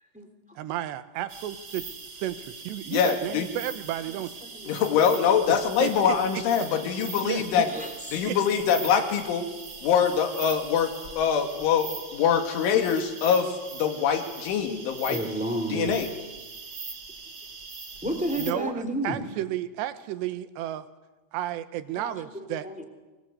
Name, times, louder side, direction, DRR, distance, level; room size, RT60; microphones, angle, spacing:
voice 1, 0.6-1.9 2.1-4.4 5.8-6.2 7.2-7.7 8.3-8.4 18.4-20.9 21.3-22.7, right 12 dB, 75° right, 12 dB, 3.1 m, -32 dB
sound 1, 1.3-18.5, right 4 dB, 40° right, 1.5 m, -41 dB
voice 2, 2.9-3.5 4.7-7.7 8.1-9.4 9.8-10.9 11.2-15.2 15.7-16.1, left 7 dB, 85° left, 5 dB, 4.7 m, -24 dB
voice 3, 4.4-4.8 7.7-8.2 15.1-16.0 18.0-19.2 21.9-22.1 22.6-22.8, right 1 dB, ahead, 5 dB, 2.6 m, -31 dB
25.5 x 22.5 x 8.2 m, 1.2 s
omnidirectional pair, 5.4 m